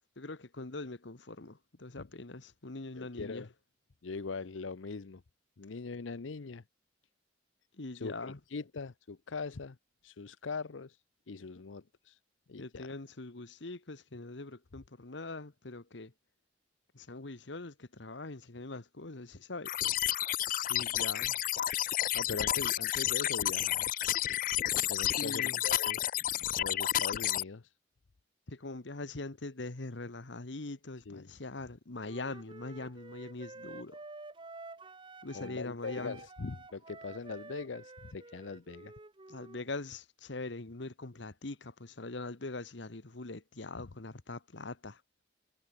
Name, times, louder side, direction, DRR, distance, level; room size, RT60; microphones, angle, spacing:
voice 1, 0.2-3.5 7.8-8.4 12.6-16.1 16.9-19.7 20.7-21.4 24.8-24.9 25.2-25.6 26.3-26.4 28.5-34.0 35.2-36.2 39.3-45.0, left 2 dB, 70° left, 1.3 m, -42 dB
voice 2, 2.9-3.5 4.0-5.2 5.6-6.6 7.9-9.8 10.0-11.0 11.3-12.2 12.5-12.9 20.9-21.0 22.1-23.9 24.9-26.0 26.6-27.7 31.1-31.3 35.3-38.9, left 4 dB, 85° left, 0.7 m, -41 dB
sound 1, 19.7-27.4, left 13 dB, 45° left, 0.3 m, -31 dB
Wind instrument woodwind instrument, 32.0-35.6 35.8-39.7, right 3 dB, 25° right, 1.0 m, -50 dB
head